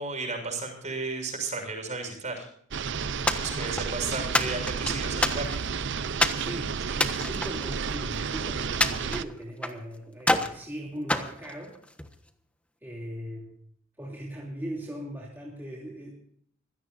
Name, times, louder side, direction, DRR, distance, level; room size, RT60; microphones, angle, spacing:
voice 1, 0.0-2.5 3.3-5.5 7.0-7.1, right 3 dB, 35° right, 4 dB, 6.9 m, -34 dB
sound 1, 2.7-9.2, right 6 dB, 60° right, 0.6 m, -31 dB
sound 2, 3.3-3.9 4.3-5.8 6.2-6.5 6.9-8.3 8.8-9.8 10.2-10.6 11.1-12.1, left 1 dB, 5° left, 1.3 m, -28 dB
voice 2, 6.4-11.8 12.8-13.6 14.0-16.1, equal, 10° right, -4 dB, 3.0 m, -39 dB
25.5 x 16.5 x 2.7 m, 0.63 s
head